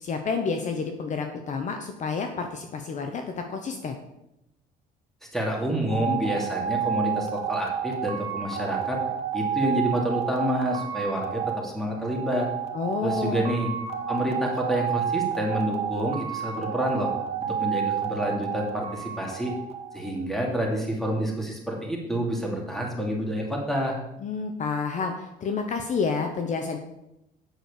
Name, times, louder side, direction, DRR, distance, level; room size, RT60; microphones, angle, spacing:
voice 1, 0.0-4.0 12.7-13.5 24.2-26.8, left 4 dB, 45° left, 5 dB, 1.0 m, -29 dB
voice 2, 5.3-9.0 9.3-12.5 13.0-13.7 14.1-17.1 17.6-19.5 19.9-24.0, equal, ahead, -1 dB, 2.7 m, -28 dB
sound 1, 5.9-20.3, right 8 dB, 40° right, 1.4 m, -30 dB
8.1 x 6.3 x 6.7 m, 0.86 s
cardioid pair, 110°, 17 cm